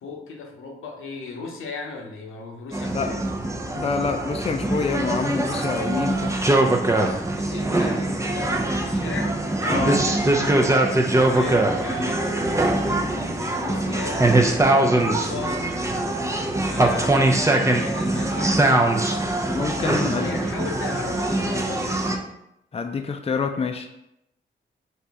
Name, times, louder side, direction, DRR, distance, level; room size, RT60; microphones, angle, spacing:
voice 1, 0.0-3.2 7.3-14.3 14.7-15.7 16.6-18.6 20.1-22.0, left 4 dB, 85° left, 1 dB, 0.7 m, -36 dB
sound 1, 2.7-22.2, right 2 dB, 15° right, 0.6 m, -22 dB
voice 2, 3.8-6.3 9.6-10.0 19.5-20.3 22.7-23.9, left 5 dB, 30° left, 6 dB, 0.5 m, -27 dB
3.9 x 2.8 x 3.5 m, 0.84 s
cardioid pair, 50°, 20 cm